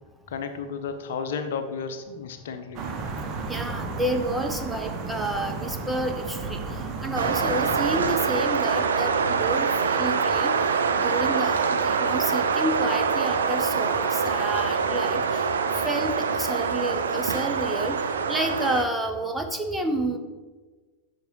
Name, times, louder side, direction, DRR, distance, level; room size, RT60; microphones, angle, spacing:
voice 1, 0.3-2.8, left 5 dB, 60° left, 8 dB, 0.8 m, -33 dB
sound 1, 2.7-8.2, right 4 dB, 35° right, 1.2 m, -33 dB
voice 2, 3.5-10.6 10.9-15.5 15.7-18.0 18.3-20.2, right 1 dB, 5° right, 4 dB, 0.9 m, -30 dB
sound 2, 7.2-18.9, right 5 dB, 65° right, 0.6 m, -25 dB
9.1 x 6.1 x 5.4 m, 1.3 s
figure-of-eight pair, 90°, 0 cm